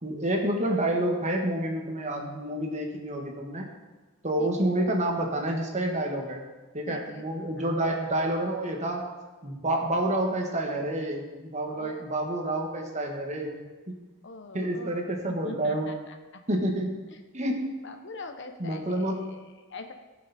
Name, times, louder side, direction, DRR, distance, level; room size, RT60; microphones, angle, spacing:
voice 1, 0.0-3.7 4.2-6.4 6.7-9.1 9.4-13.6 13.9-14.0 14.5-15.9 16.5-17.8 18.6-19.4, right 1 dB, 35° right, 1 dB, 1.5 m, -29 dB
voice 2, 6.9-7.2 7.6-7.8 11.7-12.1 14.2-16.4 17.1-17.2 17.8-19.9, left 3 dB, 60° left, 6 dB, 0.9 m, -43 dB
15.5 x 6.7 x 4.2 m, 1.2 s
head